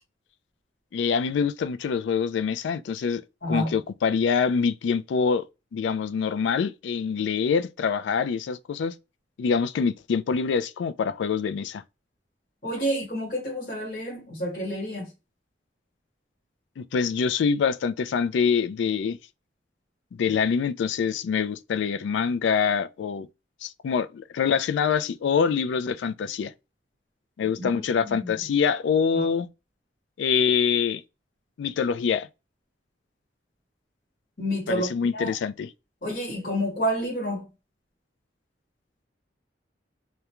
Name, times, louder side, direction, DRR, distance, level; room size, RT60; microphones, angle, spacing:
voice 1, 0.9-3.2 3.5-5.4 5.7-8.9 9.4-11.8 16.8-19.2 20.1-23.3 23.6-26.5 27.4-29.5 30.2-31.0 31.6-32.3 34.7-35.7, left 6 dB, 75° left, 0.3 m, -25 dB
voice 2, 3.4-3.7 12.6-15.1 27.6-27.7 28.0-28.4 29.1-29.3 34.4-35.3 36.0-37.5, equal, 50° left, 1.0 m, -29 dB
2.3 x 2.2 x 2.9 m
head